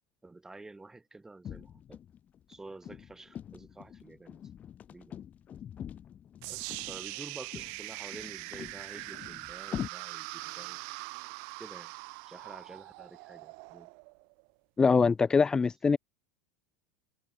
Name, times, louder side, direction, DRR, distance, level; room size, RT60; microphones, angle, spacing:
voice 1, 0.2-2.0 2.5-4.4 4.9-5.2 6.5-10.8 11.6-11.9 12.3-13.9, right 2 dB, 10° right, 4.6 m, -49 dB
sound 1, 1.4-9.9, left 9 dB, 35° left, 4.7 m, -44 dB
sound 2, 6.4-14.5, right 40 dB or more, 65° right, 2.2 m, -42 dB
voice 2, 14.8-16.0, left 5 dB, 15° left, 0.3 m, -23 dB
hypercardioid pair, 95°, 4 cm